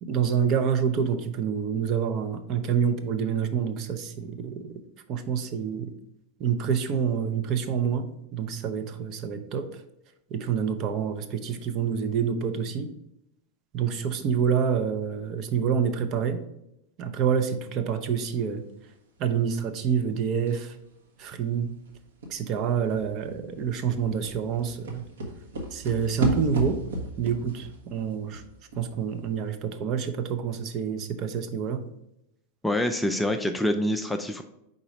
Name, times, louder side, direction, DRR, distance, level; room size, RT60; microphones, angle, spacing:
voice 1, 0.0-4.7 5.1-5.9 6.4-8.1 8.3-9.8 10.3-12.9 13.7-16.4 17.0-18.6 19.2-20.8 21.2-21.8 22.3-25.0 25.7-26.8 27.2-28.4 28.8-31.8, right 7 dB, 35° right, 8 dB, 0.6 m, -27 dB
sound 1, 20.5-20.8 21.2-21.3 21.5-29.3 29.5-29.6, right 1 dB, 65° right, 1.1 m, -35 dB
voice 2, 32.6-34.4, left 1 dB, 5° left, 5 dB, 0.4 m, -26 dB
4.9 x 3.8 x 5.1 m, 0.83 s
figure-of-eight pair, 90°, 0 cm